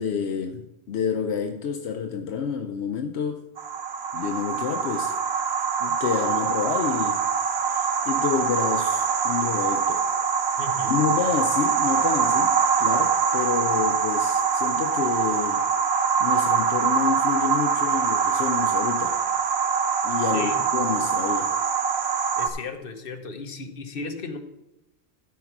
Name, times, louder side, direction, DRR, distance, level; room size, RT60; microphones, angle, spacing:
voice 1, 0.0-3.5 4.1-5.2 5.8-7.2 7.6-10.1 10.9-15.7 16.2-19.2 20.0-21.5, left 7 dB, 80° left, 0.9 m, -29 dB
sound 1, 3.6-22.5, right 6 dB, 75° right, 1.0 m, -24 dB
voice 2, 10.6-11.1 20.3-20.6 22.4-24.4, left 4 dB, 60° left, 1.2 m, -35 dB
13.0 x 4.7 x 5.9 m
omnidirectional pair, 1.1 m